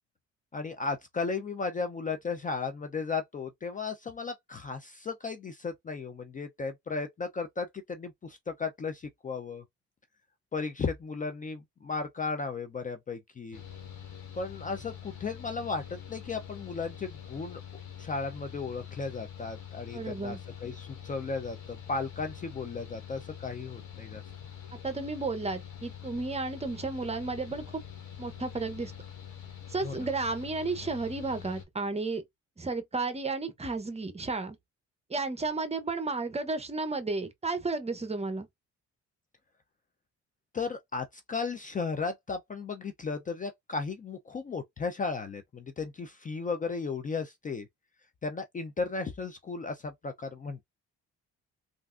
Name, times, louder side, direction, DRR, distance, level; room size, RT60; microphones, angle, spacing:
voice 1, 0.5-9.6 10.5-13.6 14.4-17.6 18.0-20.4 20.6-24.2 29.8-30.1 40.5-47.7 48.2-50.6, left 4 dB, 25° left, 0.4 m, -35 dB
Mechanical fan, 13.5-31.6, left 9 dB, 75° left, 1.4 m, -45 dB
voice 2, 19.9-20.4 24.8-27.8 28.2-28.9 29.7-32.2 32.6-34.6 35.1-38.5, right 3 dB, 20° right, 0.7 m, -33 dB
3.3 x 2.5 x 2.4 m
cardioid pair, 90°, 30 cm